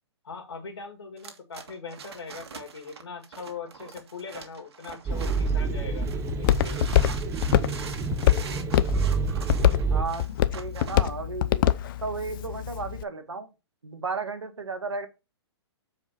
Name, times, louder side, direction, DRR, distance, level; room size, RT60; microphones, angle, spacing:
voice 1, 0.2-6.9, left 4 dB, 75° left, 5 dB, 2.4 m, -41 dB
sound 1, 1.2-5.7 6.1-11.1, right 6 dB, 70° right, 1.7 m, -43 dB
Walk footsteps, 5.1-13.0, left 12 dB, 50° left, 0.6 m, -26 dB
sound 2, 5.1-10.0, right 5 dB, 20° right, 0.8 m, -28 dB
voice 2, 9.9-10.3 10.5-11.7 12.0-13.5 13.8-15.1, right 4 dB, 90° right, 8 dB, 1.6 m, -34 dB
7.5 x 4.9 x 4.3 m, 0.27 s
hypercardioid pair, 125°, 14 cm